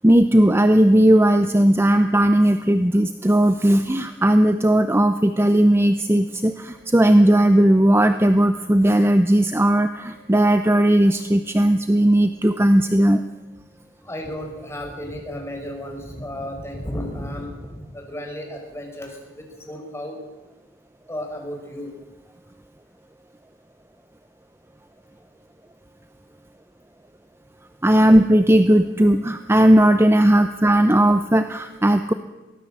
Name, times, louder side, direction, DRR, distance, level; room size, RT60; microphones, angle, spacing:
voice 1, 0.0-13.2 27.8-32.1, right 1 dB, 15° right, 9 dB, 0.7 m, -17 dB
voice 2, 14.0-20.2 21.1-21.9, equal, 15° left, 2 dB, 5.3 m, -33 dB
23.0 x 17.0 x 7.6 m, 1.1 s
head